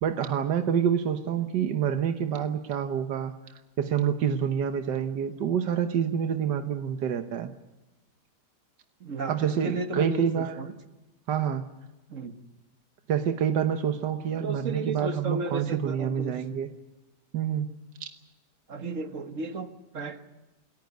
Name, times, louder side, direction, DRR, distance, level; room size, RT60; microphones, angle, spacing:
voice 1, 0.0-3.3 3.8-7.5 9.3-10.6 11.3-11.7 13.1-16.7 17.3-17.7 18.0-18.1, right 8 dB, 90° right, 8 dB, 1.7 m, -27 dB
voice 2, 9.0-10.7 12.1-12.3 14.4-16.3 18.7-19.7 19.9-20.3, right 3 dB, 50° right, 9 dB, 1.7 m, -34 dB
28.0 x 14.5 x 9.4 m, 1.0 s
omnidirectional pair, 1.8 m